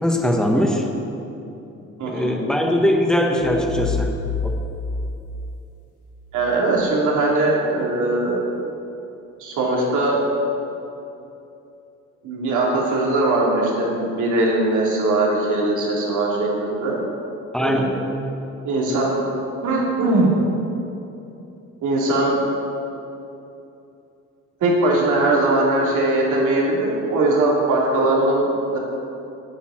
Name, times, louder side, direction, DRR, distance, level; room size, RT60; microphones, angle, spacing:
voice 1, 0.0-0.8 2.0-4.1 4.4-4.5 17.5-17.9, equal, ahead, 1 dB, 1.5 m, -20 dB
voice 2, 2.0-2.4 6.3-8.4 9.4-10.2 12.2-17.0 17.6-17.9 18.6-19.2 19.6-20.3 21.8-22.4 24.6-28.8, right 2 dB, 80° right, -3 dB, 2.7 m, -20 dB
sound 1, 3.4-6.3, left 4 dB, 80° left, 1.4 m, -28 dB
8.9 x 8.7 x 6.2 m, 2.8 s
cardioid pair, 90°, 30 cm